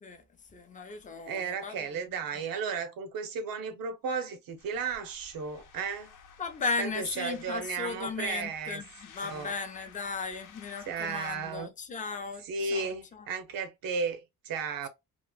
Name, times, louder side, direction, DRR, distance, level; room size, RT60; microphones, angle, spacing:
voice 1, 0.0-2.1 6.4-13.3, left 4 dB, 25° left, 0.5 m, -36 dB
voice 2, 1.3-6.1 6.8-8.8 9.2-9.5 10.9-11.7 12.5-14.9, right 5 dB, 85° right, 0.8 m, -34 dB
sound 1, 4.6-11.6, left 6 dB, 65° left, 0.7 m, -54 dB
3.0 x 2.5 x 2.3 m
cardioid pair, 150°, 34 cm